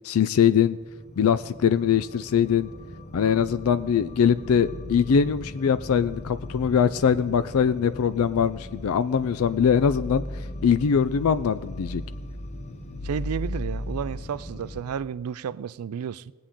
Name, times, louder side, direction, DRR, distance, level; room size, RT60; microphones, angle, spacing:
voice 1, 0.0-0.8 1.2-2.7 3.1-10.2 10.6-12.0, left 7 dB, 75° left, 0.4 m, -22 dB
sound 1, 0.8-14.8, left 1 dB, 30° left, 0.9 m, -37 dB
voice 2, 13.0-16.3, right 7 dB, 85° right, 0.4 m, -32 dB
20.0 x 8.5 x 3.8 m
head